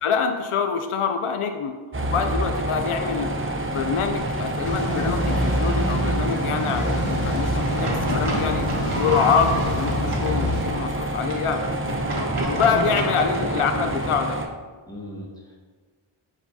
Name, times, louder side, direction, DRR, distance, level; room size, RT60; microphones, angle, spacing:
voice 1, 0.0-1.7 2.1-3.3 3.7-8.7 8.9-11.6 12.4-14.4, left 6 dB, 90° left, 6 dB, 0.6 m, -25 dB
sound 1, 1.9-14.5, right 1 dB, 25° right, 0.7 m, -27 dB
sound 2, 4.6-10.6, left 1 dB, 70° left, 1.2 m, -28 dB
sound 3, 7.6-14.2, right 1 dB, 85° right, 1.3 m, -31 dB
voice 2, 12.2-12.9 13.4-13.7 14.9-15.6, left 1 dB, 10° left, -5 dB, 1.4 m, -36 dB
7.9 x 4.8 x 2.7 m, 1.5 s
wide cardioid pair, 55°, 50 cm